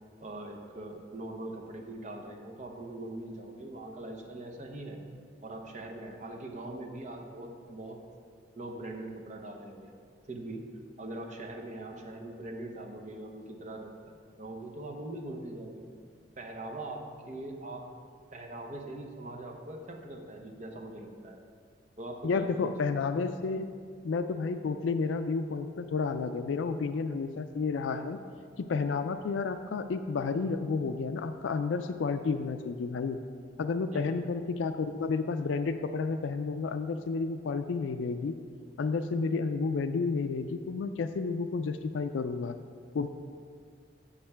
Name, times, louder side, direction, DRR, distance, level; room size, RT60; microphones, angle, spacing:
voice 1, 0.2-5.0 5.4-8.0 8.6-10.0 10.3-10.6 11.0-15.8 16.4-17.9 18.3-21.4 22.0-22.7 33.9-34.2, right 1 dB, 40° right, 2 dB, 0.9 m, -42 dB
voice 2, 22.2-23.7 24.0-28.2 28.6-33.2 33.6-38.4 38.8-42.6 42.9-43.1, left 4 dB, 75° left, 9 dB, 0.4 m, -31 dB
7.3 x 6.7 x 5.6 m, 2.1 s
head